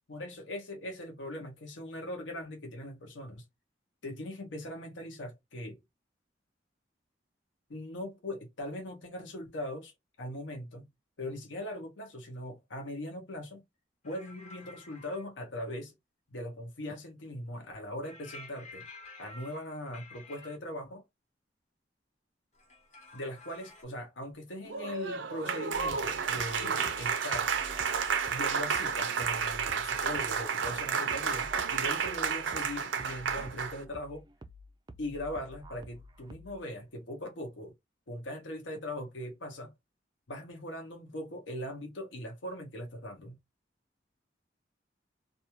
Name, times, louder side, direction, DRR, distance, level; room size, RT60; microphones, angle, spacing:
voice 1, 0.1-3.5 4.0-5.8 7.7-9.9 10.2-10.9 11.2-13.6 14.0-15.9 16.3-18.9 19.2-21.0 23.1-27.5 28.3-34.2 35.0-37.7 38.1-39.7 40.3-43.4, left 1 dB, 80° left, 0.8 m, -40 dB
sound 1, 14.0-15.3 18.0-20.6 22.6-23.8, left 2 dB, 35° left, 0.8 m, -51 dB
Applause, 24.6-33.8, right 6 dB, 80° right, 0.5 m, -31 dB
sound 2, 25.7-36.7, equal, 20° right, 0.3 m, -50 dB
2.5 x 2.2 x 2.9 m
head